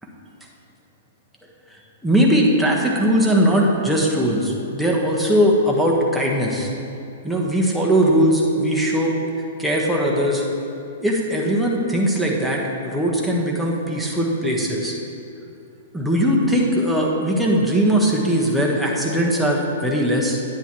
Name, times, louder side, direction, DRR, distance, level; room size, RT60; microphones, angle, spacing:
voice 1, 2.0-6.7 7.2-9.1 9.6-10.4 11.0-14.9 15.9-20.4, equal, ahead, -3 dB, 1.3 m, -19 dB
9.7 x 9.6 x 3.1 m, 2.7 s
hypercardioid pair, 125°, 0 cm